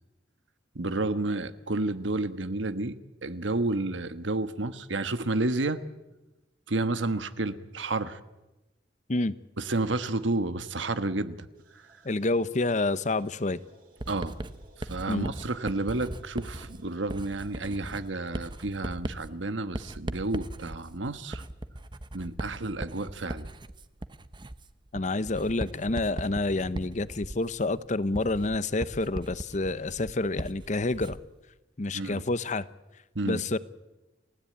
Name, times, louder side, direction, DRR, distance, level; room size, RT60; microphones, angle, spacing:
voice 1, 0.7-2.9 3.2-5.8 6.7-8.2 9.6-11.5 14.1-14.4 14.8-21.4 22.1-23.5 31.9-32.2 33.1-33.4, right 2 dB, 85° right, 11 dB, 1.3 m, -30 dB
sound 1, 11.5-18.9, right 1 dB, 50° right, 7.6 m, -60 dB
voice 2, 12.0-13.6 15.1-15.3 24.9-31.2 31.8-32.7 33.2-33.6, left 2 dB, 40° left, 15 dB, 0.8 m, -28 dB
Writing, 14.0-31.3, right 1 dB, 25° right, 0.9 m, -39 dB
30.0 x 16.0 x 8.7 m, 1.1 s
head